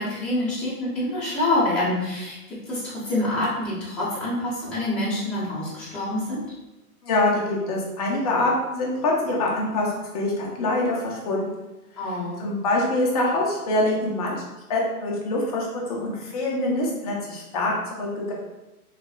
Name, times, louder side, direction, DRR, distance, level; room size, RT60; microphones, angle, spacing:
voice 1, 0.0-6.4 12.0-12.4, left 1 dB, 5° left, -13 dB, 1.0 m, -26 dB
voice 2, 7.0-11.5 12.4-14.3 14.7-17.7 18.0-18.3, left 2 dB, 25° left, -2 dB, 0.6 m, -24 dB
3.4 x 3.2 x 2.4 m, 1.0 s
hypercardioid pair, 145°, 45 cm